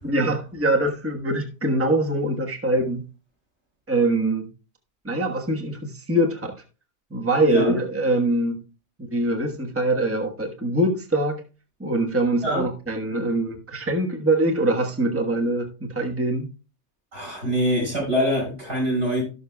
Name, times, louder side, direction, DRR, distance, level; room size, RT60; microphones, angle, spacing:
voice 1, 0.0-3.0 3.9-4.5 5.0-6.5 7.1-8.6 9.0-11.4 11.8-16.5, right 1 dB, 10° right, 1.3 m, -23 dB
voice 2, 17.1-19.2, equal, 85° right, 6.5 m, -24 dB
17.0 x 6.4 x 2.3 m
omnidirectional pair, 1.2 m